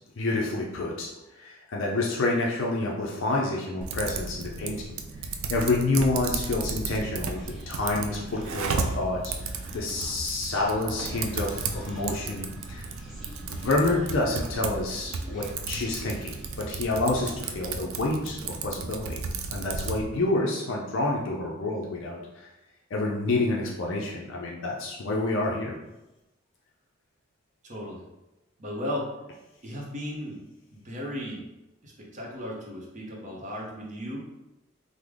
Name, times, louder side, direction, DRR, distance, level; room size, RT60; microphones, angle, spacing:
voice 1, 0.2-1.1 1.4-4.9 5.2-12.9 13.5-16.3 16.6-19.2 19.5-22.5 22.9-25.8, left 2 dB, 65° left, -2 dB, 0.4 m, -28 dB
Typing, 3.8-20.0, right 4 dB, 75° right, 0.3 m, -34 dB
Human voice, 7.3-16.8, equal, ahead, 0.8 m, -46 dB
voice 2, 27.6-28.0 28.6-29.1 29.6-30.4 30.7-31.4 31.8-34.3, equal, 35° right, -2 dB, 0.7 m, -35 dB
3.3 x 2.0 x 3.5 m, 0.99 s
head